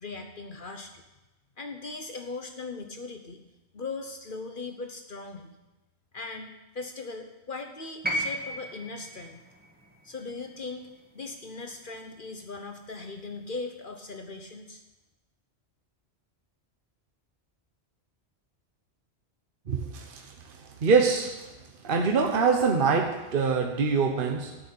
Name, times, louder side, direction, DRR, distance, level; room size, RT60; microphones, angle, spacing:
voice 1, 0.0-1.0 1.6-3.4 3.7-5.5 6.1-6.5 6.7-9.4 10.0-10.9 11.1-14.8, left 3 dB, 50° left, 1.1 m, -39 dB
sound 1, 8.0-12.2 13.4-13.5, right 1 dB, 10° right, 1.8 m, -36 dB
voice 2, 19.7-21.5 21.8-24.6, right 5 dB, 55° right, 1.1 m, -25 dB
12.5 x 6.2 x 8.6 m
omnidirectional pair, 1.1 m